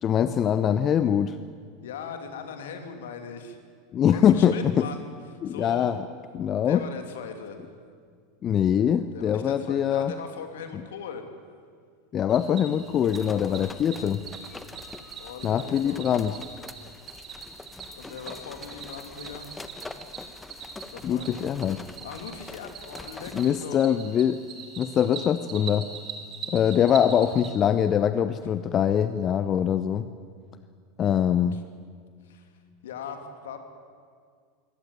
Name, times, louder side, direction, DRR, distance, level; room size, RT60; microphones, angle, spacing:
voice 1, 0.0-1.4 3.9-4.8 5.4-6.0 6.3-6.8 8.4-10.1 12.1-14.2 15.4-16.4 21.0-21.9 23.3-24.4 24.8-25.9 26.5-30.1 31.0-31.6, left 9 dB, 35° left, 12 dB, 0.8 m, -23 dB
voice 2, 1.8-3.6 4.1-6.0 6.6-7.7 9.1-11.2 13.3-14.2 15.2-16.0 17.6-17.7 17.9-19.6 20.9-21.3 21.9-23.9 26.7-26.8 31.0-31.2 31.5-31.6 32.2-33.6, left 6 dB, 65° left, 6 dB, 2.7 m, -40 dB
Cricket, 12.3-27.5, right 5 dB, 40° right, 3.8 m, -42 dB
sound 1, 12.9-23.7, left 2 dB, 10° left, 1.3 m, -45 dB
23.5 x 17.5 x 9.2 m, 2.1 s
figure-of-eight pair, 85°, 0 cm